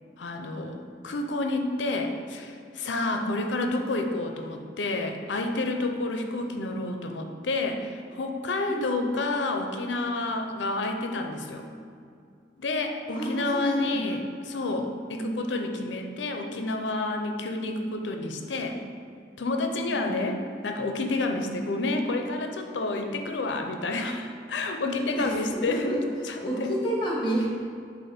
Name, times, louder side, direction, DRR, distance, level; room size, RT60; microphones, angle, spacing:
voice 1, 0.2-0.8 1.0-11.6 12.6-18.8 19.4-26.0 26.3-26.4 26.6-26.7, left 2 dB, 90° left, 4 dB, 0.6 m, -29 dB
voice 2, 8.7-9.1 13.1-14.1 15.1-15.4 17.6-17.8 19.7-20.1 21.4-21.6 25.1-27.5, right 1 dB, 25° left, -4 dB, 1.3 m, -32 dB
7.5 x 2.5 x 5.1 m, 2.4 s
head